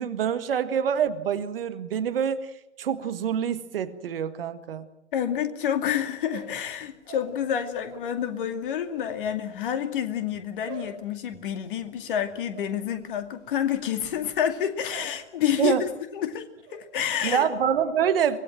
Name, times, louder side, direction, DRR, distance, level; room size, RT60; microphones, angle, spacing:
voice 1, 0.0-2.5 2.8-4.9 15.6-15.8 17.2-18.4, right 8 dB, 50° right, 11 dB, 1.8 m, -26 dB
voice 2, 5.1-17.5, left 9 dB, 45° left, 8 dB, 2.4 m, -29 dB
sound 1, 6.1-8.2 8.5-15.2 15.5-16.0 16.3-16.8, right 4 dB, 30° right, 7.4 m, -46 dB
24.5 x 20.0 x 7.6 m, 0.86 s
figure-of-eight pair, 110°, 35 cm